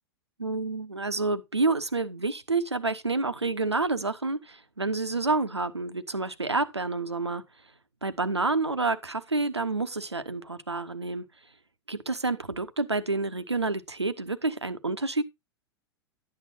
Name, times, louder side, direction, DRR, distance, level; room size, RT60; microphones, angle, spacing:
voice 1, 0.4-7.4 8.0-11.3 11.9-15.2, right 3 dB, 90° right, 0.9 m, -29 dB
11.5 x 8.6 x 2.8 m
figure-of-eight pair, 95°, 14 cm